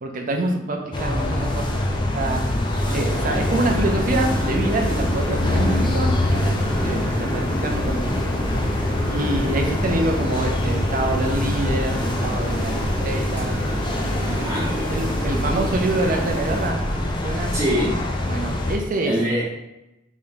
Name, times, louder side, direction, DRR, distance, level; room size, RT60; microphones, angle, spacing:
voice 1, 0.0-2.5 2.9-8.0 8.6-13.6 14.7-16.8 17.2-17.5 18.3-19.2, right 2 dB, 45° right, 3 dB, 0.5 m, -26 dB
sound 1, 0.9-18.8, left 1 dB, 25° left, 0.4 m, -24 dB
sound 2, 3.1-16.7, equal, 10° left, 0.9 m, -30 dB
voice 2, 14.3-14.8 17.5-17.9 19.0-19.4, equal, 20° right, -9 dB, 1.2 m, -24 dB
3.6 x 3.5 x 2.7 m, 0.92 s
head